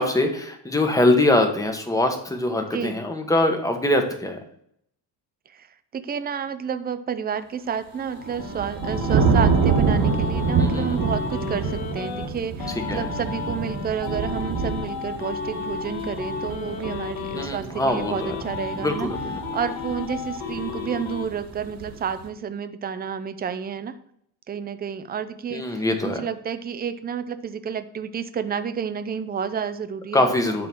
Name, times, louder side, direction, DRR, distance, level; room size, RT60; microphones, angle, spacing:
voice 1, 0.0-4.4 10.6-11.0 12.7-13.1 17.3-18.3 18.7-19.3 25.5-26.3 30.1-30.7, left 1 dB, 10° left, 4 dB, 1.2 m, -23 dB
voice 2, 5.9-19.1 19.5-24.0 24.5-30.5, right 7 dB, 20° right, 10 dB, 0.6 m, -30 dB
sound 1, 7.9-12.3 12.6-17.5 17.8-21.3, left 6 dB, 80° left, 2.2 m, -33 dB
sound 2, 8.0-22.2, right 5 dB, 50° right, 1.6 m, -27 dB
10.5 x 3.9 x 6.1 m, 0.70 s
cardioid pair, 140°, 43 cm